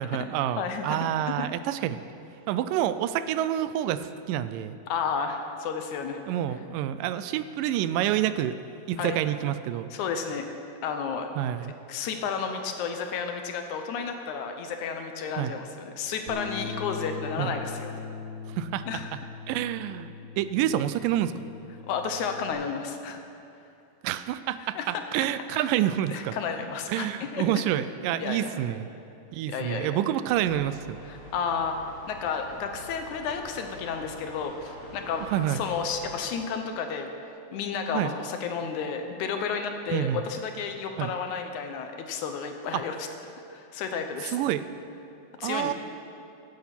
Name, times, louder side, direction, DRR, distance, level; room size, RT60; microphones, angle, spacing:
voice 1, 0.0-2.0 2.5-4.8 6.3-8.6 8.9-9.9 11.4-11.7 15.4-15.5 17.4-17.6 18.5-18.9 19.5-21.5 24.0-26.4 26.9-28.9 29.3-31.0 35.3-35.6 37.9-38.1 39.9-40.2 41.0-41.1 42.7-42.8 44.2-44.7 45.4-45.7, right 12 dB, 85° right, 13 dB, 2.2 m, -28 dB
voice 2, 0.6-1.0 1.3-1.5 4.9-6.2 9.0-9.2 9.9-10.4 10.8-11.3 11.9-18.0 18.9-19.1 21.9-23.2 24.8-25.0 25.5-25.7 26.1-27.4 28.2-28.6 29.5-30.0 31.1-31.8 32.1-37.1 37.5-43.1 43.5-44.3 45.4-45.7, left 6 dB, 75° left, 6 dB, 2.1 m, -32 dB
Bass guitar, 16.3-22.5, left 5 dB, 45° right, 0.8 m, -40 dB
sound 1, 30.3-36.2, equal, 25° left, 4.2 m, -46 dB
16.0 x 8.7 x 5.9 m, 2.7 s
omnidirectional pair, 3.8 m